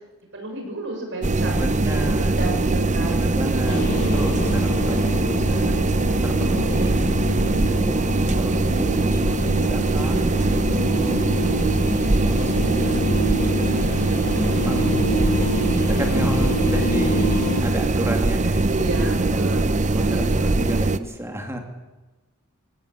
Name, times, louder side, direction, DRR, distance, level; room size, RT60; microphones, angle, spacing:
voice 1, 0.3-1.5 1.9-3.7 11.3-11.7 18.7-19.6 20.0-20.5, right 2 dB, 60° right, 2 dB, 6.6 m, -32 dB
sound 1, 1.2-21.0, right 2 dB, 35° right, 0.7 m, -21 dB
voice 2, 1.5-2.4 3.0-5.8 6.2-7.0 7.5-11.5 12.0-13.0 13.6-17.3 17.6-21.6, right 1 dB, 15° right, 3 dB, 2.8 m, -32 dB
sound 2, 3.7-17.6, left 1 dB, 85° left, 2.8 m, -28 dB
19.5 x 17.5 x 8.7 m, 1.1 s
head